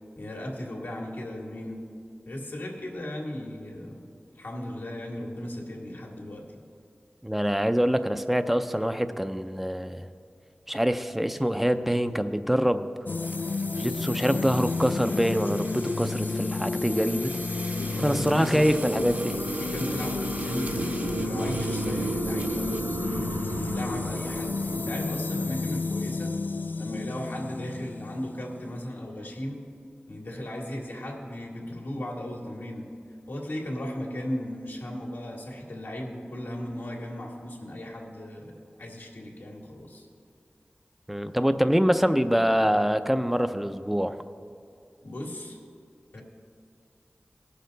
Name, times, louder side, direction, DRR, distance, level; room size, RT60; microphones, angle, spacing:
voice 1, 0.2-1.8 2.3-4.1 4.4-6.6 18.0-18.7 19.5-23.2 23.6-26.3 26.8-29.6 30.1-32.9 33.3-38.5 38.8-40.1 45.0-45.6 46.1-46.2, left 1 dB, 75° left, -1 dB, 1.8 m, -36 dB
voice 2, 7.2-10.1 10.7-12.9 13.8-17.4 18.0-19.4 41.1-44.2, equal, 5° right, 9 dB, 0.6 m, -25 dB
sound 1, 13.1-28.8, left 3 dB, 60° left, 0.3 m, -31 dB
sound 2, 13.1-22.9, right 2 dB, 50° right, 1.0 m, -45 dB
sound 3, 15.7-26.0, right 4 dB, 75° right, 0.4 m, -36 dB
18.0 x 6.6 x 4.0 m, 2.4 s
cardioid pair, 45°, 4 cm